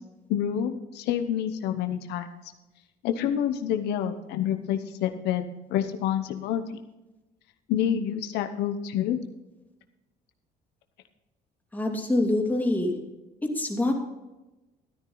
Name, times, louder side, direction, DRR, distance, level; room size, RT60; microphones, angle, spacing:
voice 1, 0.3-2.3 3.0-6.6 7.7-9.2, left 9 dB, 85° left, 7 dB, 0.9 m, -28 dB
voice 2, 11.7-13.0 13.5-13.9, left 2 dB, 10° left, 0 dB, 2.6 m, -25 dB
13.5 x 9.8 x 3.9 m, 1.0 s
cardioid pair, 110°, 17 cm